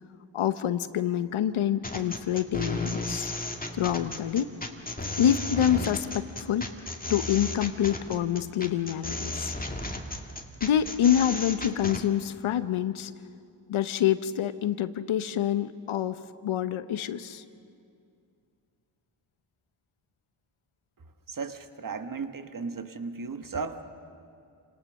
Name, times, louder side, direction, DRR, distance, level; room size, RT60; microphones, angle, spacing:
voice 1, 0.3-3.3 3.7-4.5 5.2-6.6 7.1-9.5 10.6-13.1 13.7-16.2 16.4-17.4, left 10 dB, 85° left, 12 dB, 0.9 m, -26 dB
sound 1, 1.8-12.0, left 2 dB, 20° left, 2.1 m, -34 dB
voice 2, 21.3-23.8, right 4 dB, 45° right, 8 dB, 1.5 m, -35 dB
28.0 x 18.5 x 6.4 m, 2.4 s
cardioid pair, 65°, 47 cm